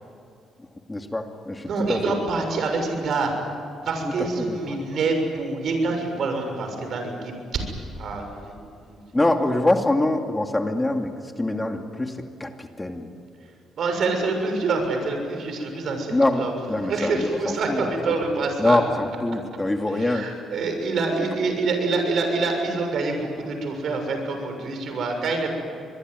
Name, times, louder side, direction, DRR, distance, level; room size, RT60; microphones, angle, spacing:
voice 1, 0.9-2.0 4.0-4.1 4.4-4.8 9.1-11.1 11.4-13.1 16.1-16.4 16.7-18.2 18.6-20.3, left 2 dB, 15° left, 4 dB, 2.4 m, -24 dB
voice 2, 1.7-3.3 3.9-7.7 8.0-8.6 8.9-9.0 13.8-16.5 16.9-18.8 20.0-25.5, right 3 dB, 65° right, 5 dB, 6.8 m, -26 dB
25.5 x 22.0 x 9.6 m, 2.5 s
cardioid pair, 90°, 0 cm